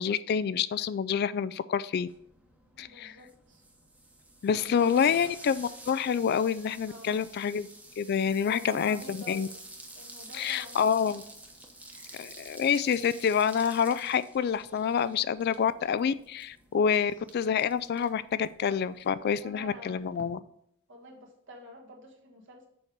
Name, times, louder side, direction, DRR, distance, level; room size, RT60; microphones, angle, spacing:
voice 1, 0.0-2.1 2.8-3.1 4.4-7.7 8.0-9.5 10.4-11.2 12.2-20.4, left 7 dB, 50° left, 16 dB, 0.3 m, -27 dB
sound 1, 2.1-20.3, right 1 dB, 5° right, 1.0 m, -50 dB
voice 2, 2.7-3.6 4.6-5.0 6.9-7.3 8.4-9.6 9.9-11.2 11.9-12.3 16.8-17.0 19.4-20.1 20.9-22.7, equal, 65° right, 2 dB, 1.6 m, -49 dB
7.0 x 4.6 x 5.1 m, 0.73 s
head